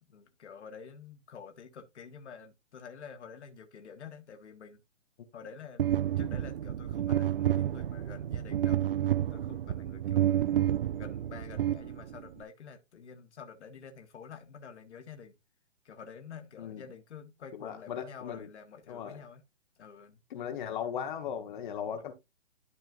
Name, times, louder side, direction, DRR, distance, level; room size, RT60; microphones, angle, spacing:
voice 1, 0.0-4.8 5.3-8.8 9.3-10.6 10.9-15.3 15.8-19.4 19.8-20.2 21.9-22.0, left 6 dB, 65° left, 1.5 m, -49 dB
sound 1, 5.8-12.4, right 11 dB, 50° right, 0.5 m, -30 dB
voice 2, 17.6-18.5 18.9-19.2 20.3-22.1, left 8 dB, 40° left, 1.2 m, -37 dB
12.5 x 4.5 x 2.5 m
hypercardioid pair, 135°, 37 cm